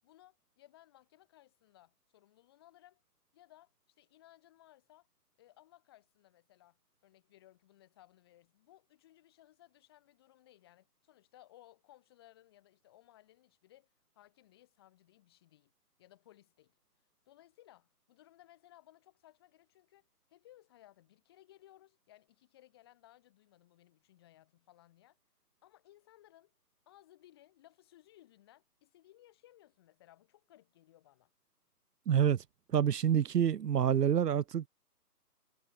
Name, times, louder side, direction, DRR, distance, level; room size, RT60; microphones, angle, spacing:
voice 1, 0.0-3.0 3.3-5.1 5.4-13.9 14.1-15.7 16.0-16.8 17.3-25.2 25.6-26.5 26.9-31.3, left 14 dB, 15° left, 6.1 m, -62 dB
voice 2, 32.1-32.4 32.7-34.7, right 9 dB, 75° right, 0.7 m, -27 dB
hypercardioid pair, 175°, 48 cm